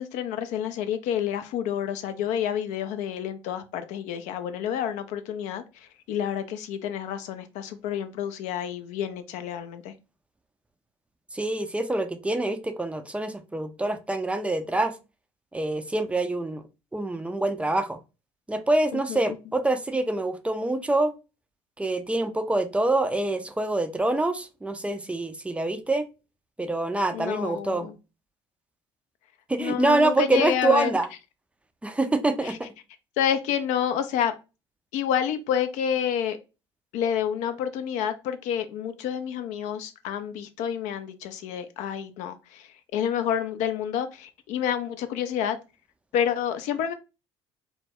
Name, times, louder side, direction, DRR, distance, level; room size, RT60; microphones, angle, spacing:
voice 1, 0.0-9.9 18.9-19.2 27.1-27.9 29.6-30.9 32.4-32.6 33.2-34.3 34.9-36.4 36.9-45.6 46.1-46.9, left 9 dB, 60° left, 0.4 m, -29 dB
voice 2, 11.3-14.9 15.5-16.6 16.9-18.0 18.5-21.1 21.8-26.1 26.6-27.9 29.5-31.1 31.8-32.7, right 2 dB, 10° right, 0.4 m, -25 dB
2.2 x 2.0 x 3.2 m
hypercardioid pair, 55°, 14 cm